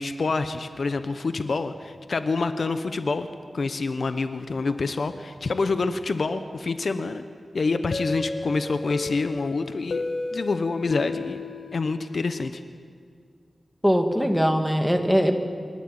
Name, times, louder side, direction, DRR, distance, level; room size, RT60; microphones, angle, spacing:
voice 1, 0.0-3.3 3.5-7.2 7.5-10.0 10.3-11.4 11.7-12.6, left 3 dB, 65° left, 9 dB, 1.0 m, -27 dB
sound 1, 7.9-12.6, left 3 dB, 85° left, 1.7 m, -33 dB
voice 2, 13.8-15.3, equal, ahead, 5 dB, 2.0 m, -21 dB
27.5 x 13.5 x 8.9 m, 2.1 s
wide cardioid pair, 90°, 0 cm